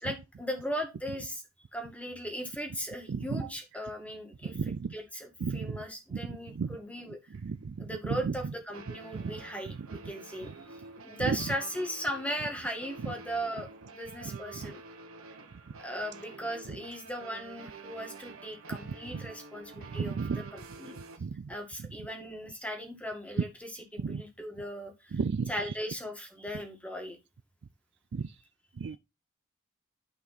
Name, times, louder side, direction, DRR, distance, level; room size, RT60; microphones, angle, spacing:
voice 1, 0.0-1.4 1.7-4.6 4.9-7.2 7.8-14.8 15.8-20.2 20.5-21.0 21.5-25.2 25.5-27.2, equal, 5° left, 2.0 m, -38 dB
voice 2, 3.1-3.4 4.5-4.9 5.4-5.8 6.1-6.2 6.6-6.7 7.4-7.9 9.1-9.2 11.2-11.4 14.6-14.7 19.9-20.4 21.2-21.5 24.0-24.2 25.1-25.5 28.1-28.2 28.8-29.0, right 5 dB, 55° right, 0.4 m, -33 dB
sound 1, 7.3-7.4 8.7-21.2, right 3 dB, 70° right, 1.6 m, -49 dB
10.0 x 5.4 x 4.2 m
head